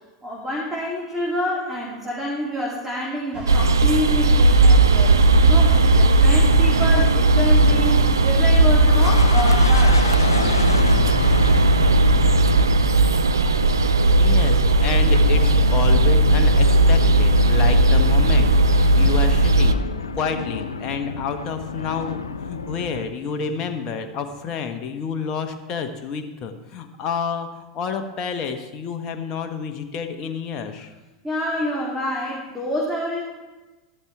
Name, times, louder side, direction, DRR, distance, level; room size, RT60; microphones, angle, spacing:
voice 1, 0.2-10.0 13.7-13.9 31.2-33.2, left 1 dB, 10° right, -5 dB, 2.8 m, -27 dB
sound 1, 3.3-8.3, left 1 dB, 40° right, 2.3 m, -34 dB
sound 2, 3.5-19.7, right 2 dB, 75° right, 0.6 m, -16 dB
sound 3, 8.8-23.1, left 5 dB, 75° left, 0.6 m, -30 dB
voice 2, 14.2-19.8 20.1-30.9, left 6 dB, 35° left, 5 dB, 1.2 m, -29 dB
13.5 x 13.0 x 3.4 m, 1.2 s
figure-of-eight pair, 85°, 2 cm